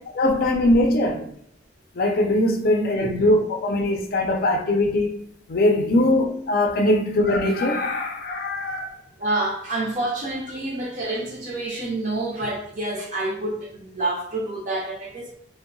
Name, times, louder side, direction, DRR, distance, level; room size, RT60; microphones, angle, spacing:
voice 1, 0.2-1.3 1.9-5.2 5.5-9.0, left 1 dB, 55° left, 0.4 m, -21 dB
voice 2, 9.2-15.3, right 2 dB, 45° right, 0.5 m, -28 dB
2.7 x 2.1 x 2.5 m
head